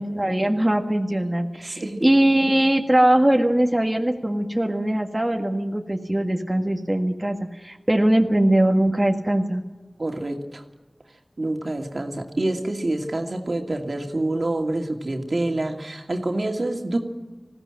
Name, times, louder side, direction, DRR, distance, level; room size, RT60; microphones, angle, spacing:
voice 1, 0.0-9.6, right 1 dB, 20° right, 2 dB, 1.7 m, -21 dB
voice 2, 1.6-2.0 10.0-10.6 11.4-17.0, right 2 dB, 60° right, 3 dB, 2.4 m, -27 dB
20.0 x 16.5 x 8.9 m, 1.2 s
wide cardioid pair, 45°, 0 cm